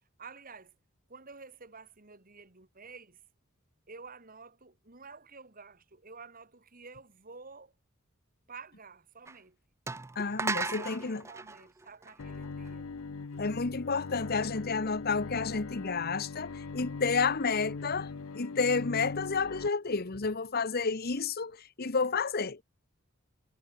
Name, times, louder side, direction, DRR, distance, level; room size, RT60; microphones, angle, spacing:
voice 1, 0.2-0.7 1.1-3.2 3.9-7.7 8.5-9.6 10.7-12.9, right 4 dB, 45° right, 2.9 m, -50 dB
sound 1, 9.3-9.4 9.9-12.7, right 3 dB, 15° right, 0.4 m, -36 dB
voice 2, 10.2-11.2 13.4-22.6, left 4 dB, 50° left, 1.0 m, -31 dB
Bowed string instrument, 12.2-19.7, left 4 dB, 90° left, 0.7 m, -40 dB
head